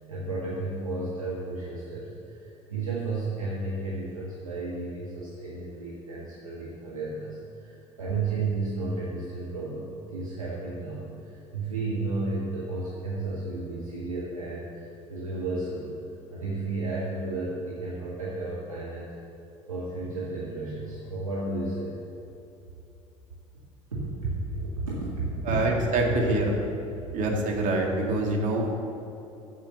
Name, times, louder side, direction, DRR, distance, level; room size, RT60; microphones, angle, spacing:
voice 1, 0.1-16.0 16.3-19.0 19.7-22.0 23.9-25.6 26.9-27.1, right 3 dB, 90° right, -7 dB, 1.5 m, -33 dB
voice 2, 25.5-26.5 27.1-28.7, right 2 dB, 50° right, 0 dB, 2.0 m, -25 dB
7.7 x 7.4 x 6.7 m, 2.8 s
figure-of-eight pair, 65°, 17 cm